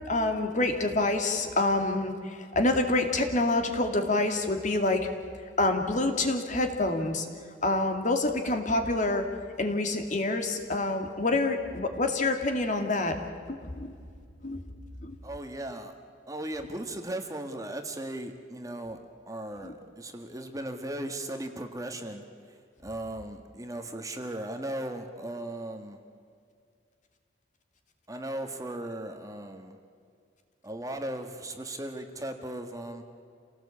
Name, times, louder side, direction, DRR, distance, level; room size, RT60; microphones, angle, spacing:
voice 1, 0.1-5.1 5.6-7.3 7.6-9.3 9.6-13.2 13.5-13.9 14.4-14.6 15.0-15.2 19.6-19.7, left 2 dB, 40° left, 5 dB, 2.4 m, -27 dB
voice 2, 15.2-15.9 16.3-19.0 19.3-26.0 28.1-29.8 30.6-33.0, right 1 dB, 20° right, 6 dB, 1.7 m, -37 dB
28.0 x 18.5 x 8.6 m, 2.2 s
head